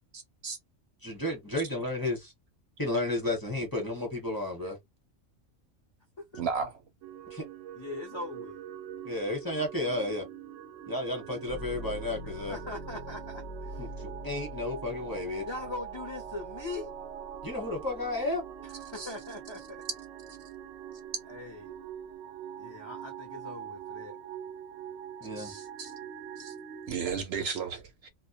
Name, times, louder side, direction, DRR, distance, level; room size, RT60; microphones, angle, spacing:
voice 1, 0.1-0.6 6.4-6.7 19.0-19.1 25.4-25.9 26.4-26.5 26.9-28.1, right 6 dB, 65° right, 0.7 m, -34 dB
voice 2, 1.0-2.3 2.8-4.8 7.3-7.4 9.0-10.2 10.9-12.6 13.8-15.4 17.4-18.4 25.2-25.5, left 1 dB, 20° left, 0.8 m, -32 dB
sound 1, 7.0-26.9, right 9 dB, 90° right, 0.9 m, -44 dB
voice 3, 7.7-8.6 12.2-13.8 15.4-16.9 18.6-19.8 21.3-21.8 22.6-24.2, left 2 dB, 35° left, 0.4 m, -41 dB
sound 2, 11.5-19.3 19.8-20.6, equal, 65° left, 0.8 m, -45 dB
2.2 x 2.0 x 2.7 m
omnidirectional pair, 1.3 m